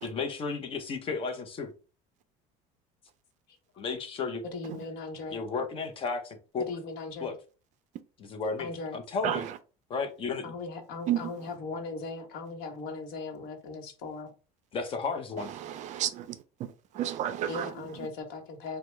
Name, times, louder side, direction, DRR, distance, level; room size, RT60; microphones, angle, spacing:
voice 1, 0.0-1.7 3.8-4.4 5.3-6.7 7.2-7.3 8.2-9.4 9.9-10.4 14.7-15.5, left 4 dB, 30° left, 0.8 m, -33 dB
voice 2, 4.5-5.4 6.7-7.3 8.6-9.0 10.4-14.3 17.5-18.8, left 3 dB, 65° left, 1.0 m, -38 dB
voice 3, 9.2-9.6 11.1-11.3 15.4-16.4 16.9-17.7, right 11 dB, 45° right, 0.4 m, -31 dB
4.9 x 2.2 x 3.3 m
cardioid pair, 140°, 17 cm